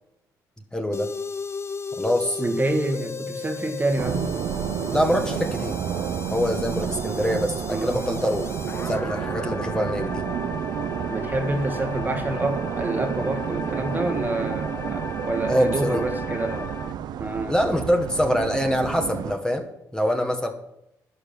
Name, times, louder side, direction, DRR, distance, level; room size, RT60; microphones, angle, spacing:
voice 1, 0.7-1.1 2.0-2.4 4.9-5.8 6.3-8.5 8.8-10.3 15.5-16.0 17.5-20.5, equal, 10° left, 1.6 m, -24 dB
sound 1, 0.9-16.9, left 5 dB, 35° left, 0.7 m, -36 dB
voice 2, 2.4-4.2 7.7-8.2 11.1-16.7 17.2-17.5, right 2 dB, 25° right, 1.7 m, -27 dB
sound 2, 4.0-19.3, right 8 dB, 75° right, 0.7 m, -30 dB
11.5 x 4.9 x 8.5 m
supercardioid pair, 65°, 7 cm